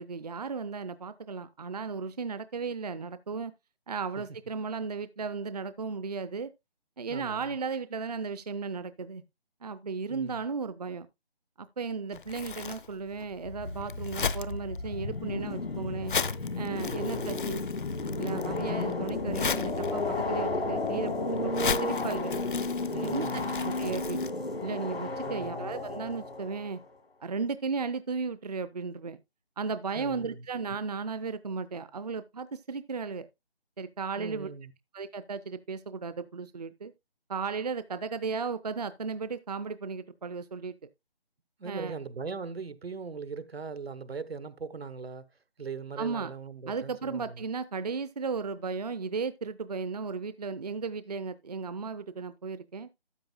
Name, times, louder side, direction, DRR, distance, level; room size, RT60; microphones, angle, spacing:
voice 1, 0.0-3.5 3.9-6.5 7.0-9.2 9.6-11.1 11.6-16.1 16.6-17.6 18.2-22.3 23.0-24.3 24.6-26.8 27.2-29.2 29.6-33.3 33.8-34.5 34.9-36.9 37.3-40.8 41.6-41.9 46.0-46.3 46.7-52.9, right 5 dB, 40° right, 0.5 m, -35 dB
voice 2, 7.1-7.5 10.1-10.4 12.1-12.2 16.8-17.5 22.9-23.6 25.2-25.7 29.9-30.5 34.2-34.7 41.6-45.2 45.6-47.4, right 5 dB, 80° right, 1.1 m, -40 dB
Crumpling crinkling, 12.1-24.3, left 6 dB, 55° left, 0.6 m, -37 dB
sound 1, 13.4-26.8, left 2 dB, 80° left, 1.9 m, -33 dB
13.0 x 8.0 x 2.3 m
figure-of-eight pair, 165°, 30 cm